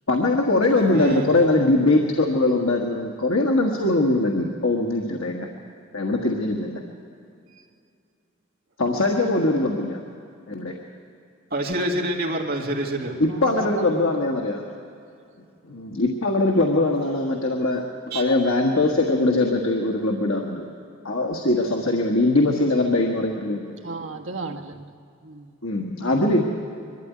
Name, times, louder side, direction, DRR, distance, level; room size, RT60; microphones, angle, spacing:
voice 1, 0.1-5.5 5.9-6.8 8.8-10.0 10.5-10.8 13.2-14.6 15.7-17.8 18.1-20.6 21.0-23.6 25.6-26.4, left 2 dB, 90° left, 0 dB, 1.6 m, -21 dB
voice 2, 0.9-1.3 11.5-13.1 18.1-18.3, right 1 dB, 50° right, 0 dB, 2.4 m, -26 dB
voice 3, 13.0-14.0 23.8-24.9 25.2-25.6, right 3 dB, 75° right, 3 dB, 1.4 m, -35 dB
23.0 x 13.0 x 9.6 m, 2.5 s
head